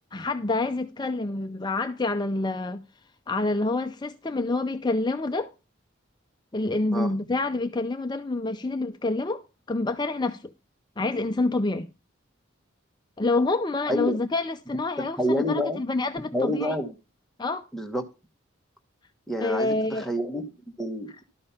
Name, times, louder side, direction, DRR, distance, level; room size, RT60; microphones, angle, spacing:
voice 1, 0.1-2.8 3.3-5.5 6.5-10.5 11.0-11.9 13.2-16.7 17.4-17.7 19.4-20.1, left 2 dB, 20° left, 0.5 m, -27 dB
voice 2, 15.0-15.8 16.3-16.9 17.7-18.1 19.3-20.5 20.8-21.1, equal, ahead, 1.2 m, -28 dB
12.5 x 5.3 x 5.6 m
head